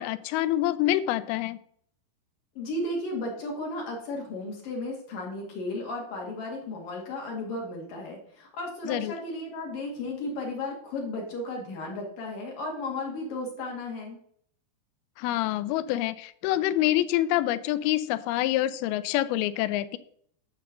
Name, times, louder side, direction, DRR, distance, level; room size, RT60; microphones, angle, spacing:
voice 1, 0.0-1.6 8.9-9.1 15.2-20.0, left 14 dB, 80° left, 15 dB, 2.3 m, -26 dB
voice 2, 2.5-14.2, left 2 dB, 55° left, -1 dB, 3.4 m, -34 dB
11.5 x 4.5 x 7.7 m, 0.65 s
omnidirectional pair, 4.9 m